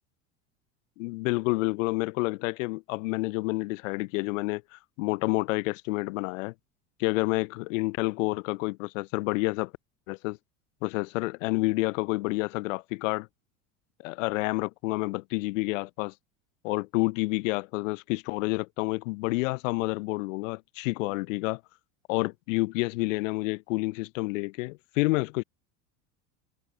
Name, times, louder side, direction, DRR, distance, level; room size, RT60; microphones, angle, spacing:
voice 1, 1.0-6.5 7.0-9.7 10.1-10.4 10.8-13.3 14.0-16.1 16.6-21.6 22.1-25.4, left 24 dB, 75° left, 2.5 m, -29 dB
supercardioid pair, 95°, 38 cm